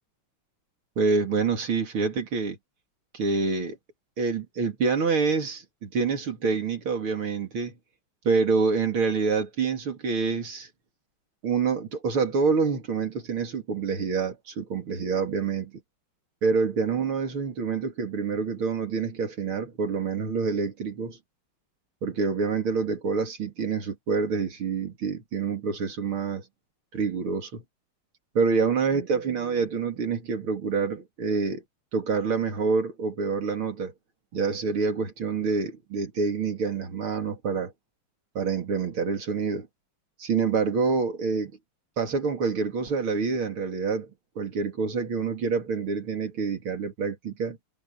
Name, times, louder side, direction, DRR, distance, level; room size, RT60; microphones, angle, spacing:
voice 1, 1.0-2.6 3.1-3.8 4.2-7.7 8.3-10.7 11.4-15.7 16.4-21.2 22.0-26.4 26.9-27.6 28.4-31.6 31.9-33.9 34.3-37.7 38.4-39.7 40.2-41.5 42.0-44.1 44.4-47.6, right 5 dB, 70° right, 3.5 m, -27 dB
omnidirectional pair, 2.4 m